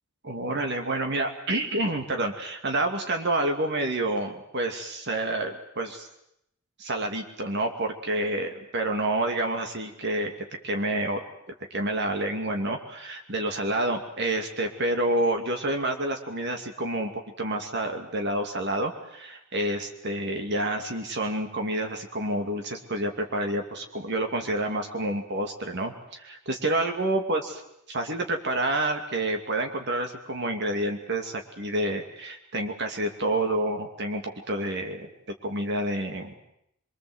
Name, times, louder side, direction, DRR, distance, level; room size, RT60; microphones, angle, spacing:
voice 1, 0.2-6.1 6.8-10.3 10.6-11.2 11.7-17.1 17.4-27.6 27.9-34.2 34.5-35.1 35.4-36.3, right 1 dB, 55° right, 4 dB, 2.5 m, -28 dB
24.5 x 24.0 x 8.0 m, 0.77 s
head